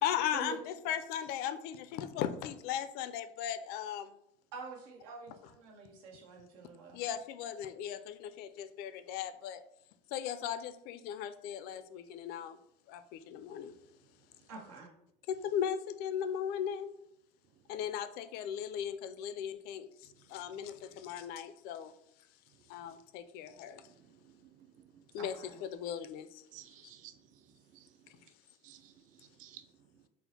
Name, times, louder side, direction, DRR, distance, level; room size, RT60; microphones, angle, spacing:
voice 1, 0.0-4.1 6.9-9.6 10.1-12.6 12.9-13.7 15.3-16.9 17.7-21.9 22.7-23.9 25.1-25.3 25.6-26.4, left 9 dB, 60° left, 11 dB, 0.4 m, -37 dB
voice 2, 4.5-7.0 14.5-14.9 25.2-25.6, right 4 dB, 85° right, 1 dB, 1.0 m, -47 dB
voice 3, 26.5-27.1 27.7-27.9 28.6-29.6, right 12 dB, 45° right, 10 dB, 0.4 m, -54 dB
4.4 x 2.1 x 4.1 m, 0.75 s
cardioid pair, 140°, 18 cm